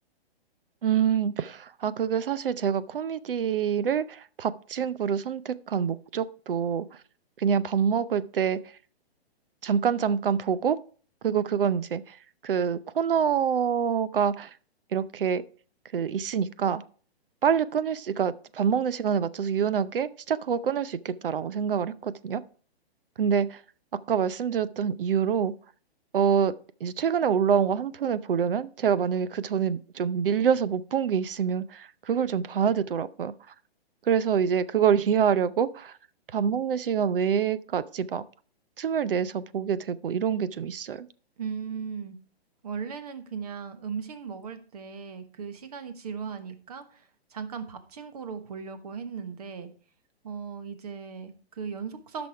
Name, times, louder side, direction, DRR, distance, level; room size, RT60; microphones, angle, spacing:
voice 1, 0.8-6.9 7.4-8.6 9.6-10.8 11.2-12.2 12.4-14.5 14.9-15.4 15.9-16.8 17.4-22.4 23.2-23.6 24.1-25.5 26.1-26.5 26.8-33.3 34.0-36.0 36.3-38.2 38.8-41.1, right 7 dB, 60° right, 16 dB, 0.6 m, -26 dB
voice 2, 41.4-42.2 42.6-47.0 47.3-49.7 50.2-52.3, right 6 dB, 40° right, 9 dB, 1.2 m, -37 dB
11.5 x 6.2 x 4.6 m, 0.41 s
hypercardioid pair, 175°, 31 cm